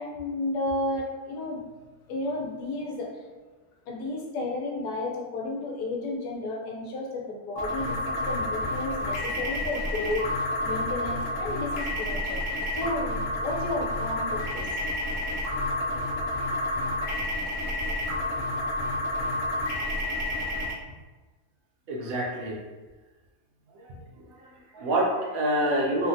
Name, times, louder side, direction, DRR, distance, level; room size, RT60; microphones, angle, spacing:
voice 1, 0.0-1.6 2.1-3.1 3.9-10.3 10.6-12.4 12.7-14.7, left 2 dB, 90° left, -1 dB, 1.2 m, -32 dB
sound 1, 7.6-20.7, left 1 dB, 65° left, 0.6 m, -30 dB
voice 2, 21.9-22.6 23.7-26.1, right 1 dB, 70° right, -2 dB, 0.9 m, -28 dB
3.3 x 2.1 x 2.6 m, 1.3 s
omnidirectional pair, 1.7 m